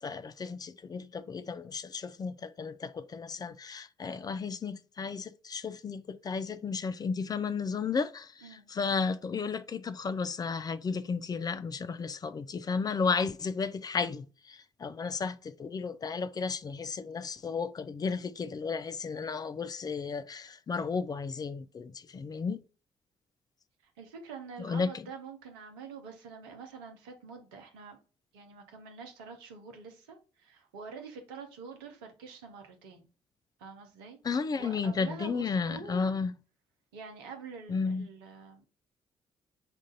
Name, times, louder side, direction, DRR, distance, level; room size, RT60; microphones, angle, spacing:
voice 1, 0.0-22.6 24.6-25.1 34.2-36.3 37.7-38.1, left 5 dB, 30° left, 0.4 m, -33 dB
voice 2, 23.8-28.0 28.3-33.1 33.6-34.2 34.6-36.1 36.9-38.7, right 5 dB, 75° right, 0.8 m, -46 dB
5.3 x 2.5 x 3.8 m
figure-of-eight pair, 45°, 13 cm